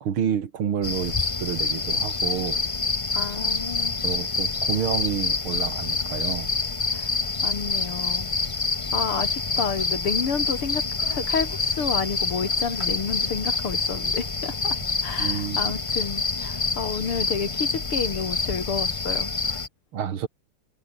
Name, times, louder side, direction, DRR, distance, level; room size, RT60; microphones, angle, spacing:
voice 1, 0.0-2.6 4.0-6.5 15.2-15.8 19.9-20.3, right 8 dB, 75° right, 2.6 m, -29 dB
sound 1, 0.8-19.7, left 3 dB, 30° left, 0.6 m, -27 dB
voice 2, 3.1-4.0 6.9-7.1 7.4-8.3 8.9-10.8 11.1-14.8 15.0-19.3, left 6 dB, 85° left, 3.8 m, -30 dB
omnidirectional pair, 2.4 m